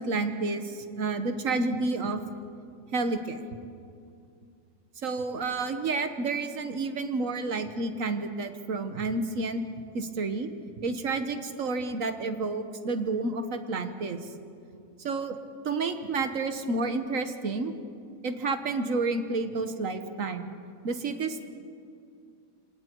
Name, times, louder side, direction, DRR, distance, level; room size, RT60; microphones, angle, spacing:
voice 1, 0.0-2.2 2.9-3.4 5.0-9.6 9.9-10.5 10.8-14.2 15.0-15.4 15.6-17.7 18.2-20.5 20.8-21.5, right 3 dB, 50° right, 8 dB, 1.5 m, -30 dB
26.5 x 26.5 x 4.6 m, 2.4 s
omnidirectional pair, 1.9 m